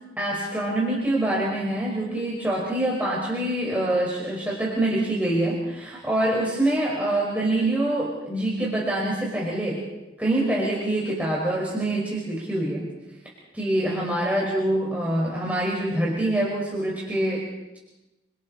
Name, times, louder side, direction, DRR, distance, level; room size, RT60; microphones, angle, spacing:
voice 1, 0.2-9.8 10.2-12.9 13.5-17.4, right 1 dB, 10° right, -5 dB, 5.1 m, -25 dB
30.0 x 24.5 x 4.3 m, 1.0 s
head